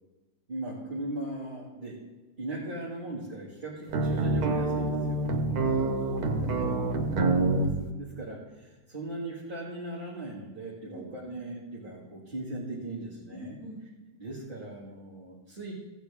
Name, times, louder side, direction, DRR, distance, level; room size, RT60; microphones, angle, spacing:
voice 1, 0.5-2.0 2.4-5.3 6.5-13.6 14.2-15.7, right 2 dB, 35° right, -6 dB, 2.2 m, -38 dB
sound 1, 3.9-7.7, right 2 dB, 80° right, 1.6 m, -27 dB
voice 2, 5.5-7.2 10.8-11.4 13.3-13.8, left 1 dB, 75° left, -10 dB, 4.7 m, -44 dB
15.5 x 8.8 x 3.5 m, 1.3 s
omnidirectional pair, 1.6 m